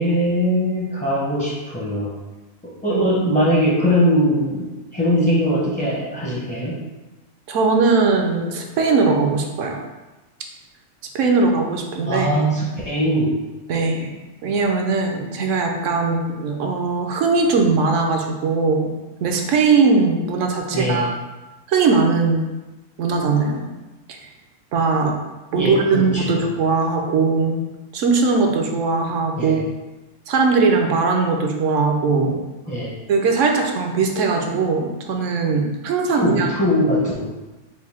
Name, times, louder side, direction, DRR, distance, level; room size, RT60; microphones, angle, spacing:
voice 1, 0.0-2.2 2.8-4.7 4.9-6.7 12.1-13.4 20.7-21.1 25.6-26.0 26.3-26.4 29.4-29.6 32.7-32.9 36.2-37.3, equal, 15° left, -6 dB, 0.4 m, -20 dB
voice 2, 7.5-9.8 11.1-12.4 13.7-14.1 14.4-18.9 19.2-21.1 21.7-22.5 23.0-23.7 24.1-24.2 24.7-25.2 25.5-27.6 27.9-29.6 30.3-32.4 33.1-36.5, right 4 dB, 70° right, 3 dB, 0.9 m, -20 dB
4.5 x 2.5 x 3.4 m, 1.1 s
omnidirectional pair, 1.4 m